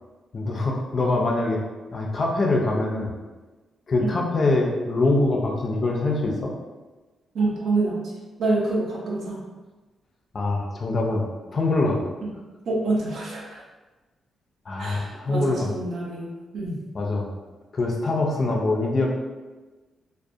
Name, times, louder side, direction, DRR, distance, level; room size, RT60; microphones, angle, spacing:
voice 1, 0.3-1.6 1.9-3.1 3.9-6.5 10.3-11.2 11.5-12.1 14.7-15.7 16.9-17.3 17.7-19.1, left 2 dB, 35° left, -1 dB, 0.3 m, -24 dB
voice 2, 7.3-8.0 8.4-9.4 12.2-12.3 12.7-13.6 14.8-16.3 16.5-16.8, right 2 dB, 75° right, -3 dB, 0.6 m, -26 dB
2.3 x 2.0 x 2.6 m, 1.2 s
wide cardioid pair, 145°, 0 cm